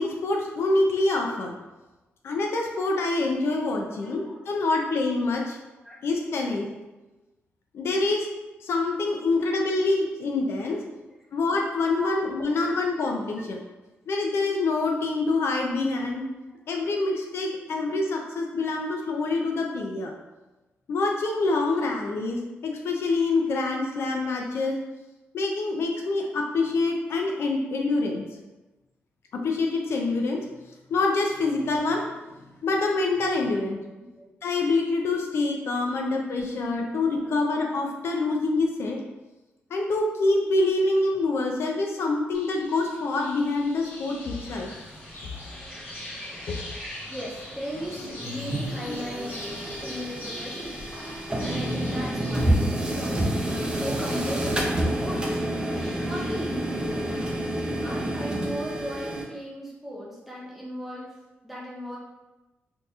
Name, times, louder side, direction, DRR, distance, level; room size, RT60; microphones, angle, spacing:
voice 1, 0.0-1.6 2.2-5.6 6.0-6.7 7.7-8.3 8.6-10.8 11.3-13.6 14.1-16.3 16.7-20.1 20.9-24.7 25.3-28.2 29.3-30.4 30.9-32.1 32.6-33.8 34.4-39.0 39.7-44.7 46.5-46.7, left 3 dB, 70° left, 1 dB, 0.4 m, -26 dB
voice 2, 4.0-4.4 5.8-6.0 12.0-12.2 12.6-12.7 13.3-13.5 34.1-34.3 37.2-37.4 47.1-52.6 52.9-55.4 56.0-57.2 57.8-62.0, equal, 5° right, -5 dB, 1.0 m, -37 dB
sound 1, 42.3-52.5, left 1 dB, 55° left, 1.4 m, -42 dB
sound 2, 44.5-57.2, equal, 10° left, 1.3 m, -46 dB
sound 3, 48.2-59.2, right 1 dB, 20° right, 0.6 m, -28 dB
3.9 x 2.6 x 2.4 m, 1.1 s
cardioid pair, 95°, 4 cm